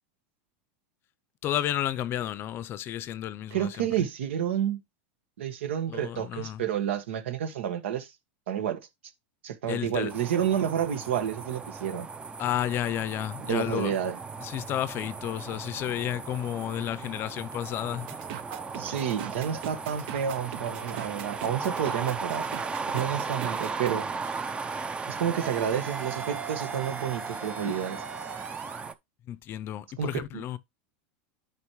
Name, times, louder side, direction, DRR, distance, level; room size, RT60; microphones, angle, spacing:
voice 1, 1.4-3.9 5.9-6.6 9.7-10.1 12.4-14.0 14.4-18.1 29.3-30.6, left 12 dB, 35° left, 0.6 m, -32 dB
voice 2, 3.5-4.8 5.4-8.1 8.5-8.8 9.4-12.1 13.5-14.2 18.8-22.5 22.9-24.1 25.1-28.0 30.0-30.4, right 9 dB, 85° right, 1.5 m, -30 dB
sound 1, 10.1-28.9, right 4 dB, 15° right, 0.6 m, -37 dB
sound 2, 18.1-23.9, right 11 dB, 65° right, 0.9 m, -40 dB
sound 3, 24.2-24.5 25.4-28.9, right 7 dB, 30° right, 1.7 m, -41 dB
9.7 x 5.3 x 3.1 m
supercardioid pair, 130°, 6 cm